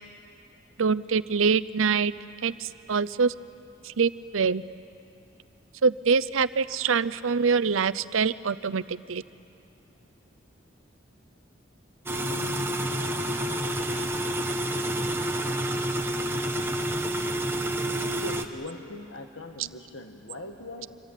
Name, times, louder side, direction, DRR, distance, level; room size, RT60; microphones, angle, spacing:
voice 1, 0.8-2.1 2.4-3.3 3.8-4.6 5.8-9.2, right 5 dB, 90° right, 17 dB, 0.6 m, -25 dB
voice 2, 12.1-12.7 18.2-21.0, left 2 dB, 70° left, 4 dB, 1.9 m, -41 dB
sound 1, 12.1-18.5, right 1 dB, 10° right, 1.1 m, -28 dB
26.0 x 24.5 x 9.1 m, 2.6 s
head